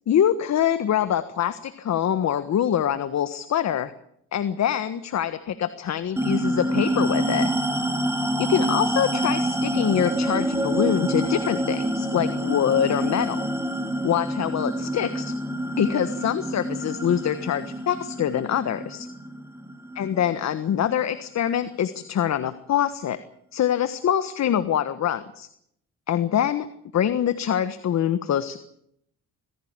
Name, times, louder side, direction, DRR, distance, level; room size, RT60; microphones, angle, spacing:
voice 1, 0.1-3.9 4.3-7.5 8.4-13.4 14.0-15.3 15.8-19.1 20.0-23.2 23.5-25.5 26.1-26.7 26.9-28.6, left 9 dB, 60° left, 12 dB, 1.4 m, -24 dB
sound 1, 6.2-21.0, right 1 dB, 10° right, 3.0 m, -27 dB
24.5 x 16.0 x 8.9 m, 0.72 s
cardioid pair, 90°, 30 cm